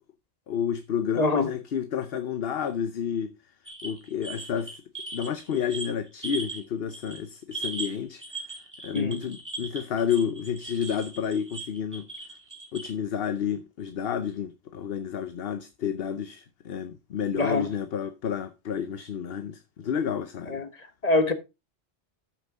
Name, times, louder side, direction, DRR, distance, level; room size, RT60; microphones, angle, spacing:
voice 1, 0.5-3.3 3.8-4.8 5.1-8.2 8.8-12.1 12.7-20.6, left 8 dB, 65° left, 0.9 m, -30 dB
voice 2, 1.1-1.5 8.9-9.2 17.3-17.7 20.5-20.7 21.0-21.3, left 2 dB, 35° left, 1.3 m, -24 dB
sound 1, 3.7-6.6 6.9-7.2 7.5-12.9, right 3 dB, 15° right, 2.5 m, -39 dB
13.0 x 6.0 x 3.6 m
omnidirectional pair, 1.1 m